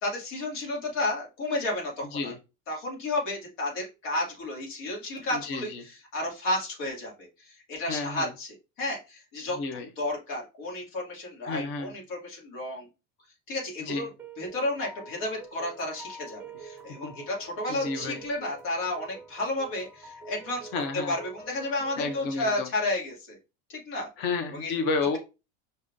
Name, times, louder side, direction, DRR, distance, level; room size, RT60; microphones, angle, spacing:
voice 1, 0.0-2.3 2.7-5.7 6.1-9.6 10.0-12.9 13.5-14.1 14.4-20.7 21.1-23.4 23.7-24.1 24.5-24.7, left 2 dB, 80° left, -1 dB, 2.3 m, -32 dB
voice 2, 5.3-5.8 7.9-8.3 9.6-9.9 11.4-11.9 13.8-14.1 17.0-17.1 17.7-18.2 20.7-21.2 22.0-22.7 24.2-25.2, left 4 dB, 35° left, 6 dB, 0.5 m, -31 dB
sound 1, 14.2-22.3, right 3 dB, 5° right, 0.7 m, -46 dB
5.3 x 3.6 x 2.5 m, 0.28 s
cardioid pair, 175°, 35 cm